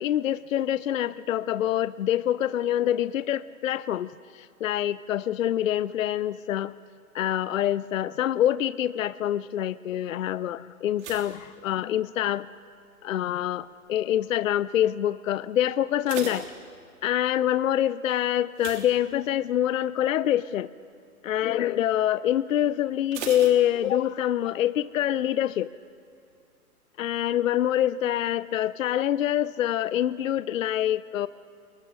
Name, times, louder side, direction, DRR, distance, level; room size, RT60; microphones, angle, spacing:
voice 1, 0.0-6.7 7.1-12.5 13.0-16.5 17.0-20.7 21.2-25.7 27.0-31.3, left 11 dB, 60° left, 17 dB, 0.6 m, -26 dB
sound 1, 10.9-12.4 12.7-13.2 13.8-14.2 14.5-14.6 15.0-15.1 15.7-17.2 18.5-19.7 20.0-20.3 20.7-20.8 23.1-24.3 24.6-24.7, right 6 dB, 50° right, 3.3 m, -40 dB
29.0 x 22.0 x 5.5 m, 2.5 s
figure-of-eight pair, 125°, 45 cm